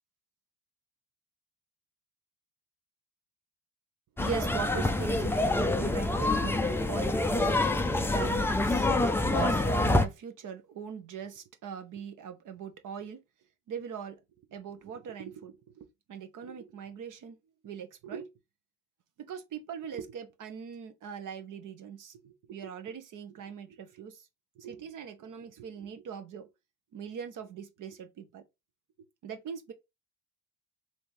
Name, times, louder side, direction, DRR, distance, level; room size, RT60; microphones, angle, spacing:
sound 1, 4.2-10.1, left 2 dB, 5° left, 0.4 m, -26 dB
voice 1, 4.2-13.2 13.7-14.2 14.5-17.4 17.6-18.3 19.3-24.3 24.6-26.5 26.9-28.4 29.2-29.7, right 7 dB, 45° right, 0.9 m, -41 dB
3.2 x 2.9 x 4.6 m
hypercardioid pair, 60°, 44 cm